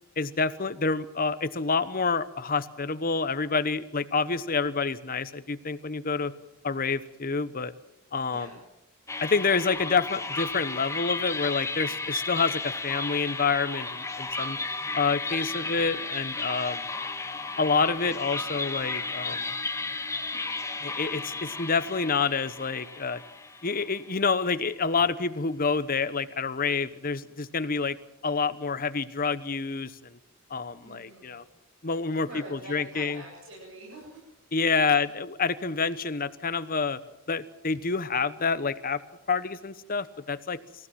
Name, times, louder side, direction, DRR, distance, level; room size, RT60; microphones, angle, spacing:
voice 1, 0.2-6.3 6.6-7.7 8.1-8.5 9.2-14.6 14.9-16.9 17.6-19.5 20.8-23.2 23.6-28.0 28.2-30.2 30.5-31.4 31.8-33.2 34.5-37.0 37.3-39.0 39.3-40.6, left 4 dB, 45° left, 13 dB, 1.1 m, -28 dB
voice 2, 8.3-8.6 15.5-15.8 30.8-31.4 32.2-34.4 34.9-35.0, right 1 dB, 65° right, -2 dB, 7.9 m, -45 dB
sound 1, 9.1-24.3, left 3 dB, 15° left, 1.4 m, -34 dB
26.0 x 16.0 x 7.6 m, 0.86 s
head